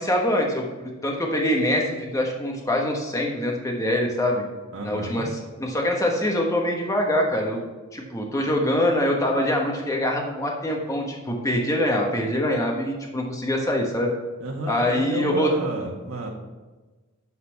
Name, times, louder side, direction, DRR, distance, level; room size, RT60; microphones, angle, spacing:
voice 1, 0.0-4.4 4.8-5.3 5.6-7.6 7.9-14.1 14.7-15.5, left 1 dB, 15° left, 0 dB, 1.2 m, -24 dB
voice 2, 4.7-5.3 14.4-16.3, right 2 dB, 80° right, 2 dB, 1.4 m, -31 dB
11.5 x 4.2 x 5.8 m, 1.2 s
head